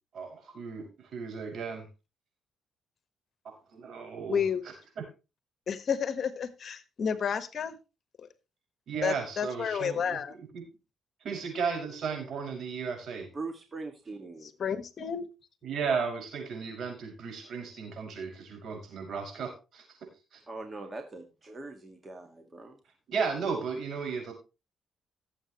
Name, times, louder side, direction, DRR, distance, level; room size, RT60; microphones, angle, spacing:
voice 1, 0.1-1.9 3.4-4.4 5.0-5.1 8.9-10.6 11.2-13.3 15.6-20.0 20.3-20.4 23.1-24.3, right 5 dB, 65° right, 3 dB, 5.9 m, -35 dB
voice 2, 4.3-4.6 5.7-7.8 8.2-8.3 9.0-10.3 14.6-15.3, left 7 dB, 55° left, 12 dB, 1.4 m, -31 dB
voice 3, 13.3-14.5 20.5-22.8, right 3 dB, 30° right, 5 dB, 1.9 m, -41 dB
17.5 x 7.9 x 3.1 m, 0.29 s
cardioid pair, 90°, 0 cm